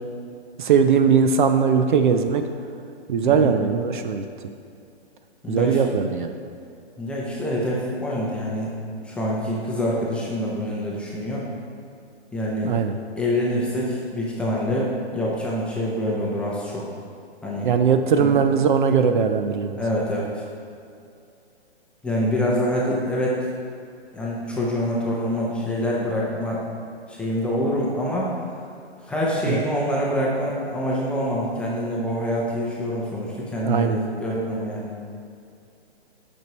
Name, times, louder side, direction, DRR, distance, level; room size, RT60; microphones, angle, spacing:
voice 1, 0.6-2.5 3.1-4.2 5.5-6.3 12.6-12.9 17.6-19.8 29.4-29.6 33.6-34.0, right 6 dB, 50° right, 7 dB, 0.5 m, -20 dB
voice 2, 5.4-5.8 7.0-8.7 9.0-11.4 12.3-12.7 13.2-16.8 17.4-17.7 18.2-18.4 19.8-20.4 22.0-23.4 24.1-26.6 27.1-28.3 29.0-34.9, equal, 5° left, -5 dB, 0.6 m, -25 dB
9.0 x 6.2 x 2.9 m, 2.5 s
hypercardioid pair, 140°, 32 cm